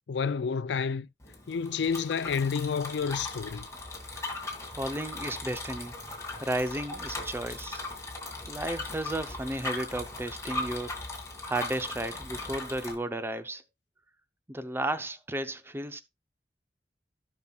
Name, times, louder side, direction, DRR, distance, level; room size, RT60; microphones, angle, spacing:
voice 1, 0.1-1.1 1.5-3.7, left 6 dB, 75° left, 0.4 m, -29 dB
Bicycle, 1.2-12.9, left 2 dB, 15° left, 1.9 m, -38 dB
voice 2, 4.2-5.9 6.4-7.8 8.5-10.9 11.4-13.6 14.5-16.0, right 1 dB, 15° right, 0.7 m, -34 dB
16.0 x 5.7 x 2.3 m
head